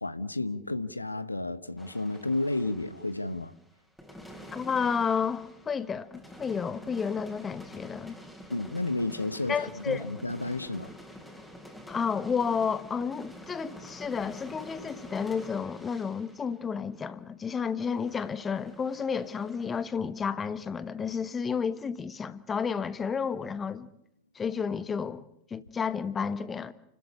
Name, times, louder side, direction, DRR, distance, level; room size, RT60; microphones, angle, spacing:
voice 1, 0.0-3.5 8.5-10.9, left 2 dB, 85° left, 1.1 m, -32 dB
sound 1, 1.8-3.6 4.0-17.5 17.8-19.8, equal, 5° left, 3.7 m, -48 dB
voice 2, 4.5-8.2 9.5-10.1 11.9-23.9 24.3-25.2 25.5-26.7, left 6 dB, 20° left, 1.2 m, -31 dB
29.5 x 13.5 x 9.8 m
figure-of-eight pair, 90°, 0 cm